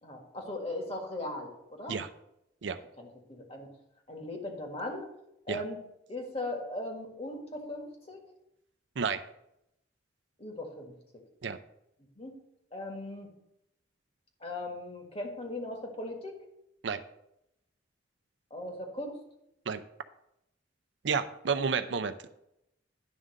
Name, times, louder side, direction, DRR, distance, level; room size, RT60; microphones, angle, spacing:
voice 1, 0.0-2.0 3.0-3.7 4.1-5.1 5.5-5.8 6.1-8.2 10.4-11.2 12.2-12.3 12.7-13.3 14.4-16.4 18.5-19.2, left 1 dB, 35° left, 2 dB, 1.6 m, -38 dB
voice 2, 9.0-9.3 11.4-11.6 16.8-17.0 19.7-19.8 21.0-22.3, right 5 dB, 70° right, 10 dB, 0.5 m, -31 dB
10.5 x 3.8 x 6.4 m, 0.81 s
head